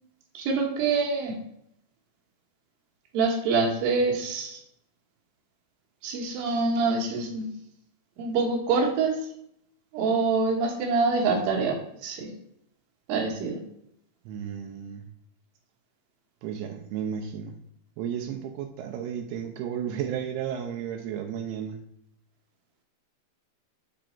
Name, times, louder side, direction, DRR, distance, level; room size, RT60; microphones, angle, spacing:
voice 1, 0.3-1.3 3.1-4.6 6.0-7.5 8.2-9.1 9.9-11.8 12.0-12.3 13.1-13.6, right 4 dB, 70° right, 0 dB, 3.0 m, -25 dB
voice 2, 14.3-15.1 16.4-17.6 18.0-21.8, right 8 dB, 90° right, 3 dB, 2.7 m, -33 dB
8.2 x 3.8 x 4.4 m, 0.71 s
omnidirectional pair, 4.4 m